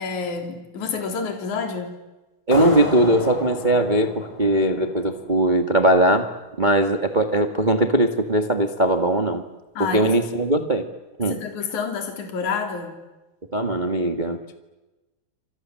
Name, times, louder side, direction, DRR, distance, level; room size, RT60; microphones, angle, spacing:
voice 1, 0.0-1.9 9.7-10.2 11.3-13.0, left 5 dB, 55° left, 4 dB, 4.9 m, -28 dB
sound 1, 2.5-5.8, left 2 dB, 30° left, 5.4 m, -31 dB
voice 2, 2.5-6.3 6.6-9.4 9.8-10.9 11.2-11.4 13.5-14.5, right 1 dB, 45° right, 6 dB, 0.6 m, -20 dB
29.0 x 26.5 x 7.7 m, 1.1 s
omnidirectional pair, 4.3 m